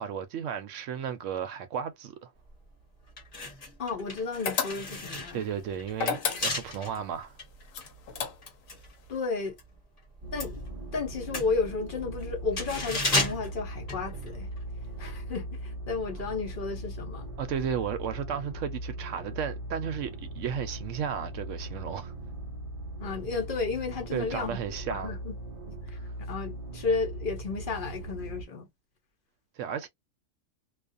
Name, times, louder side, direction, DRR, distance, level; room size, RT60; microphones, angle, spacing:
voice 1, 0.0-2.3 5.3-7.3 17.4-22.1 24.1-25.2 29.6-29.9, right 8 dB, 70° right, 0.8 m, -34 dB
sound 1, 2.5-2.6 3.1-9.7 10.0-14.6 14.9-15.1, left 2 dB, 30° left, 1.1 m, -35 dB
voice 2, 3.8-5.4 9.1-9.6 10.3-10.6 10.9-14.5 15.0-17.3 23.0-24.6 24.9-25.3 25.9-28.7, left 4 dB, 45° left, 0.8 m, -33 dB
sound 2, 4.5-5.1 5.9-6.8 7.7-8.7, left 6 dB, 75° left, 1.1 m, -31 dB
sound 3, 10.2-28.4, right 1 dB, 40° right, 0.5 m, -40 dB
2.4 x 2.3 x 2.5 m
omnidirectional pair, 1.4 m